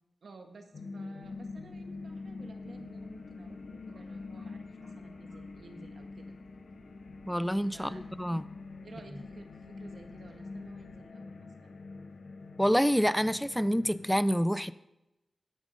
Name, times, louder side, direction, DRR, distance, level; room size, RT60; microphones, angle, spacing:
voice 1, 0.2-6.3 7.7-8.0 8.8-11.8, right 3 dB, 65° right, 5 dB, 1.5 m, -53 dB
sound 1, 0.7-14.1, left 3 dB, 70° left, 0.6 m, -45 dB
sound 2, 1.2-11.0, right 2 dB, 45° right, 1.7 m, -61 dB
voice 2, 7.3-8.4 12.6-14.7, equal, ahead, 16 dB, 0.4 m, -27 dB
10.0 x 9.0 x 5.2 m, 0.95 s
wide cardioid pair, 130°, 0 cm